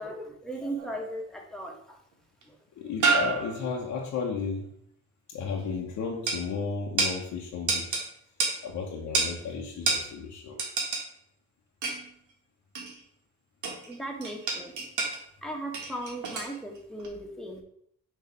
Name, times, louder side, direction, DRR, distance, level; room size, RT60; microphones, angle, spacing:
voice 1, 0.0-2.0 2.5-2.6 13.9-14.8 15.4-17.6, right 1 dB, ahead, 0 dB, 1.5 m, -37 dB
sound 1, 0.8-1.3 2.4-2.5 3.0-3.9 6.3-6.4 7.0-7.2 7.7-8.1 8.4-8.6 9.1-9.3 9.9-10.1 10.6-11.1 11.8-12.1 12.7-13.0 13.6-13.9 14.2-15.2 15.7-16.6 17.0-17.1, right 4 dB, 75° right, 1.7 m, -28 dB
voice 2, 2.7-4.7 5.3-8.0 8.4-10.6, left 5 dB, 75° left, -1 dB, 1.1 m, -34 dB
6.4 x 3.3 x 5.3 m, 0.68 s
cardioid pair, 90°, 30 cm